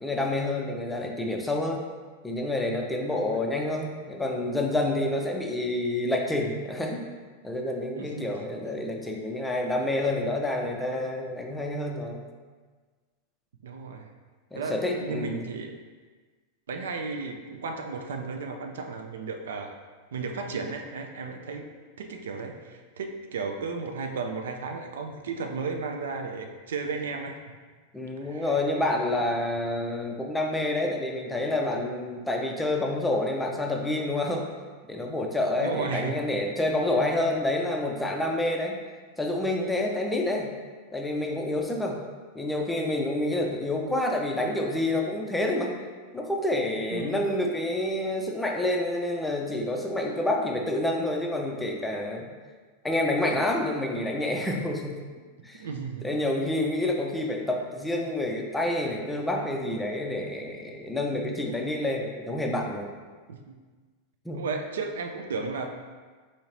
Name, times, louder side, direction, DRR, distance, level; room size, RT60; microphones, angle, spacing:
voice 1, 0.0-1.8 2.2-7.0 7.4-12.3 14.5-15.4 27.9-34.4 34.9-38.8 39.2-40.5 40.9-42.0 42.3-45.7 46.1-52.3 52.8-55.0 55.4-55.6 56.0-62.9 64.3-64.4, left 1 dB, 5° left, 0 dB, 0.4 m, -28 dB
voice 2, 8.0-8.3 13.6-14.1 14.5-15.7 16.7-19.8 20.1-21.7 22.0-27.4 28.2-28.6 29.2-29.3 35.6-36.2 46.9-47.2 55.5-56.1 63.3-63.6 64.3-65.7, right 4 dB, 60° right, 4 dB, 0.3 m, -34 dB
4.2 x 2.7 x 2.9 m, 1.4 s
figure-of-eight pair, 90°, 0 cm